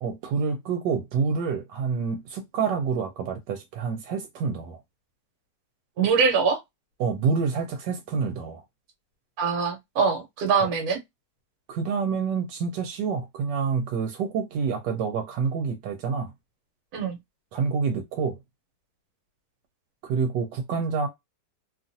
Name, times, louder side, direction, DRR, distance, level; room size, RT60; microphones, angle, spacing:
voice 1, 0.0-4.8 7.0-8.6 10.6-10.7 11.7-16.3 17.5-18.4 20.0-21.1, right 5 dB, 80° right, 1.2 m, -27 dB
voice 2, 6.0-6.6 9.4-11.0 16.9-17.2, right 5 dB, 60° right, 1.3 m, -23 dB
2.9 x 2.4 x 2.6 m
omnidirectional pair, 1.9 m